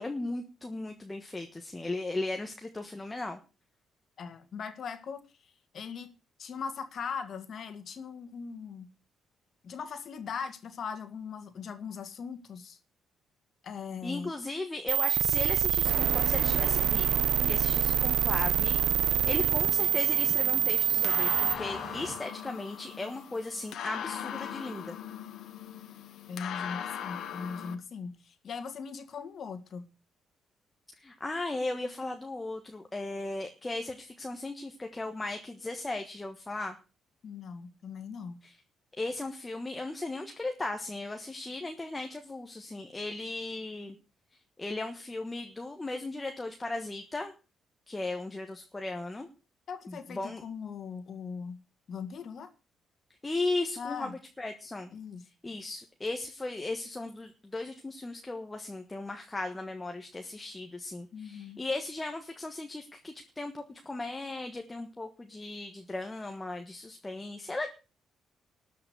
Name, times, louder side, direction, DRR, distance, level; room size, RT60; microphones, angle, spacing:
voice 1, 0.0-3.4 14.0-25.0 31.0-36.7 38.4-38.6 39.0-43.9 44.6-47.3 47.9-49.3 49.9-50.4 53.2-54.9 55.4-67.7, left 2 dB, 15° left, 5 dB, 1.3 m, -37 dB
voice 2, 4.2-6.1 6.4-8.9 9.6-12.8 13.6-14.3 26.3-29.9 37.2-38.4 49.7-51.6 51.9-52.5 53.8-54.1 54.9-55.2 61.1-61.6, left 6 dB, 50° left, 8 dB, 2.2 m, -40 dB
sound 1, 14.9-21.5, right 9 dB, 70° right, 1.0 m, -26 dB
sound 2, 15.8-22.2, right 4 dB, 35° right, 2.0 m, -40 dB
sound 3, 19.8-27.7, left 9 dB, 70° left, 1.6 m, -40 dB
13.0 x 5.9 x 8.1 m, 0.33 s
cardioid pair, 150°, 0 cm